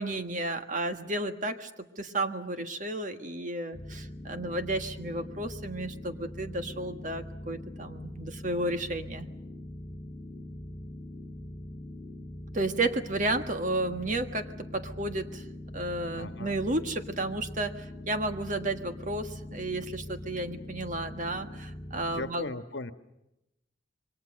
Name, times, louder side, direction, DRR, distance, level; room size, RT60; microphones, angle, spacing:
voice 1, 0.0-1.7 2.0-9.3 12.5-15.4 15.7-22.5, right 2 dB, 40° right, 7 dB, 1.6 m, -32 dB
sound 1, 3.7-22.3, left 1 dB, 15° left, 6.8 m, -42 dB
voice 2, 16.1-16.6 22.1-22.9, left 2 dB, 65° left, 9 dB, 1.4 m, -37 dB
27.5 x 23.5 x 6.5 m, 0.92 s
head